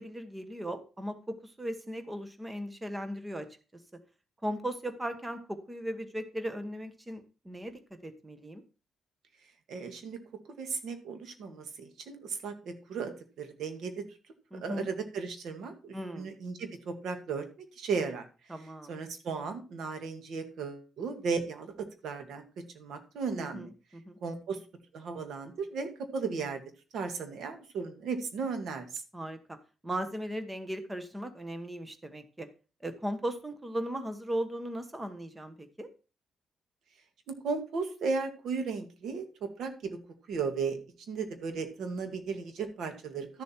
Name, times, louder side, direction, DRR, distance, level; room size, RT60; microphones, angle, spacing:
voice 1, 0.0-3.5 4.4-8.6 14.5-14.9 15.9-16.3 18.5-19.0 23.3-24.2 29.1-29.6 29.8-32.5 32.8-35.9, right 1 dB, 10° right, 9 dB, 1.2 m, -37 dB
voice 2, 9.7-10.2 10.6-13.1 13.4-14.1 14.6-17.4 17.8-18.3 18.9-23.7 24.2-24.6 24.9-26.6 26.9-29.0 37.3-40.0 40.3-40.8 41.1-43.4, right 5 dB, 65° right, 7 dB, 2.0 m, -35 dB
12.5 x 7.2 x 4.4 m, 0.33 s
cardioid pair, 160°, 0 cm